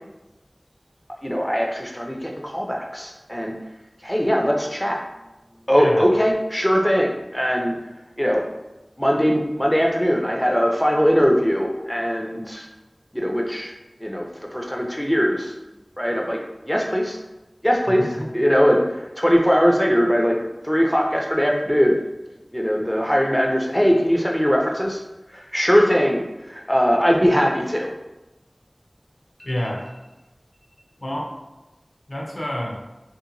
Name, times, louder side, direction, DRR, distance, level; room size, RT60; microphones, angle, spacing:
voice 1, 1.2-3.6 4.0-5.0 5.7-7.8 8.2-8.4 9.0-12.7 13.1-13.7 14.0-14.3 14.5-15.5 16.0-16.4 16.7-17.2 17.6-20.4 20.6-21.9 22.5-25.0 25.3-27.9, equal, 5° left, 0 dB, 0.3 m, -20 dB
voice 2, 17.9-18.3 29.4-29.8 31.0-31.3 32.1-32.8, equal, 70° left, -2 dB, 0.5 m, -28 dB
2.8 x 2.1 x 2.5 m, 1.0 s
wide cardioid pair, 40°, 0 cm